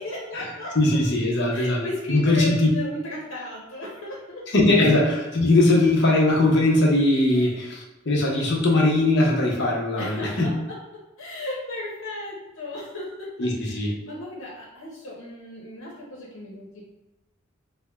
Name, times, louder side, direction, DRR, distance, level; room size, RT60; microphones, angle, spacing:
voice 1, 0.0-0.8 1.5-4.4 7.3-7.4 10.0-10.8 11.2-13.3 13.6-16.8, left 2 dB, 90° left, -4 dB, 0.8 m, -35 dB
voice 2, 0.7-1.8 2.1-2.7 4.5-10.5 13.4-14.0, left 2 dB, 60° left, -2 dB, 0.8 m, -20 dB
3.4 x 2.1 x 3.4 m, 1.0 s
head